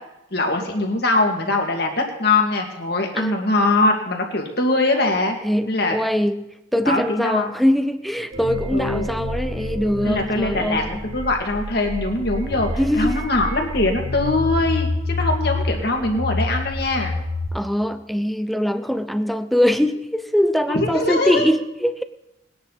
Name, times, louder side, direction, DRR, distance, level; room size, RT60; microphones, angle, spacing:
voice 1, 0.3-5.4 5.7-6.0 6.8-7.5 8.7-9.1 10.0-12.7 12.9-17.2 20.7-21.5, left 2 dB, 55° left, 2.2 m, -22 dB
voice 2, 3.1-3.6 5.4-6.4 6.7-11.0 12.8-13.3 17.5-22.0, equal, ahead, 0.5 m, -22 dB
sound 1, 8.3-17.5, left 2 dB, 50° right, 2.3 m, -28 dB
20.0 x 10.5 x 4.1 m
head